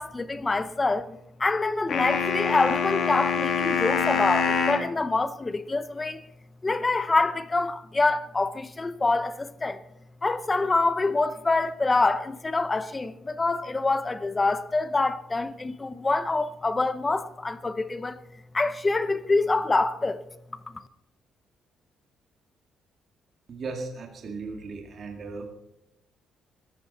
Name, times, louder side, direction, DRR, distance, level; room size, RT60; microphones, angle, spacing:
voice 1, 0.0-6.2 6.6-9.8 10.2-18.2 18.5-20.2, left 3 dB, 15° left, 0.6 m, -26 dB
sound 1, 1.9-4.9, left 6 dB, 45° left, 1.7 m, -25 dB
voice 2, 23.5-25.5, right 3 dB, 40° right, 2.0 m, -36 dB
21.0 x 13.0 x 4.2 m
cardioid pair, 165°, 0 cm